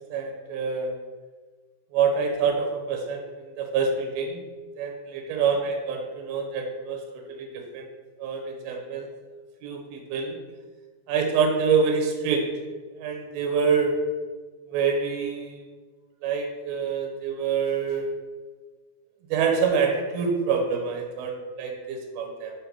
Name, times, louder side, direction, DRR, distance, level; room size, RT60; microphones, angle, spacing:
voice 1, 0.1-0.9 1.9-4.4 4.8-7.9 8.2-9.1 9.6-10.4 11.1-12.4 13.0-13.9 14.7-15.6 16.2-18.1 19.3-22.5, right 5 dB, 75° right, 2 dB, 2.8 m, -26 dB
6.1 x 4.4 x 5.8 m, 1.4 s
omnidirectional pair, 4.7 m